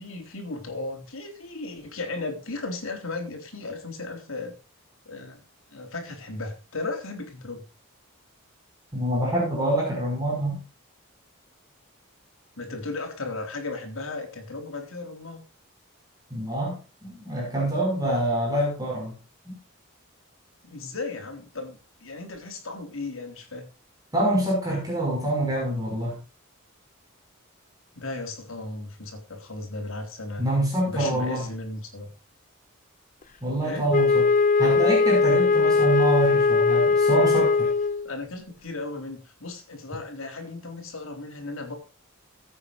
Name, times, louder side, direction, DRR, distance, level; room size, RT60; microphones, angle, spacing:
voice 1, 0.0-4.5 5.1-5.4 5.7-7.6 12.5-15.4 20.6-23.7 27.9-30.5 30.9-32.1 33.6-33.8 38.0-41.7, left 3 dB, 70° left, 4 dB, 3.8 m, -35 dB
voice 2, 8.9-10.6 16.3-19.2 19.5-19.6 24.1-26.2 30.4-31.4 33.4-34.3 34.6-37.7, right 1 dB, 15° right, -3 dB, 5.7 m, -26 dB
Wind instrument woodwind instrument, 33.9-38.1, left 4 dB, 35° left, 0.7 m, -20 dB
20.0 x 8.9 x 2.5 m, 0.32 s
head